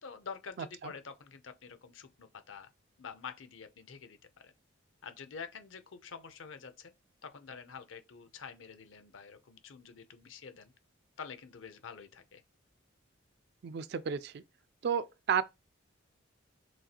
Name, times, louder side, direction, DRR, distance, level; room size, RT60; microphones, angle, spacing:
voice 1, 0.0-2.7 3.0-4.2 4.4-4.5 5.0-6.9 7.2-10.7 11.2-12.4, left 6 dB, 70° left, 0.6 m, -47 dB
voice 2, 13.6-14.4 14.8-15.4, right 7 dB, 55° right, 0.3 m, -32 dB
6.1 x 2.4 x 2.8 m
head